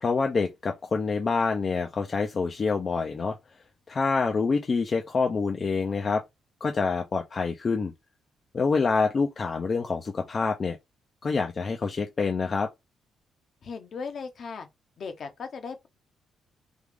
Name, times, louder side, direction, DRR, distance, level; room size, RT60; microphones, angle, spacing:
voice 1, 0.0-3.4 3.9-6.2 6.6-7.9 8.5-10.8 11.2-12.7, left 4 dB, 40° left, 0.5 m, -26 dB
voice 2, 13.6-14.7 15.0-15.9, left 5 dB, 55° left, 0.9 m, -37 dB
3.4 x 2.4 x 3.4 m
cardioid pair, 90°, 0 cm